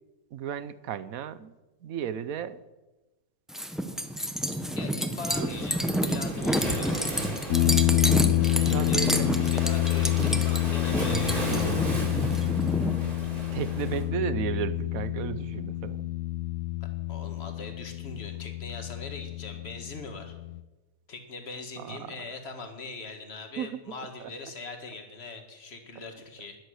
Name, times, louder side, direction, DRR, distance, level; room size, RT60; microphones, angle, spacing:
voice 1, 0.3-1.6 1.8-2.6 5.4-5.5 8.6-9.3 11.5-11.6 12.0-12.8 13.3-16.1 21.8-22.2 23.6-23.8 24.2-24.3, right 9 dB, 70° right, 15 dB, 1.1 m, -35 dB
sound 1, 3.5-13.0, equal, ahead, 0.7 m, -29 dB
voice 2, 4.8-7.1 8.4-11.6 17.1-20.4 21.1-26.6, left 3 dB, 45° left, 5 dB, 2.0 m, -41 dB
Waves surf, 5.3-14.0, right 1 dB, 35° right, 3.4 m, -35 dB
sound 2, 7.5-20.6, left 15 dB, 75° left, 1.2 m, -28 dB
13.5 x 11.0 x 6.4 m, 1.1 s
omnidirectional pair, 1.6 m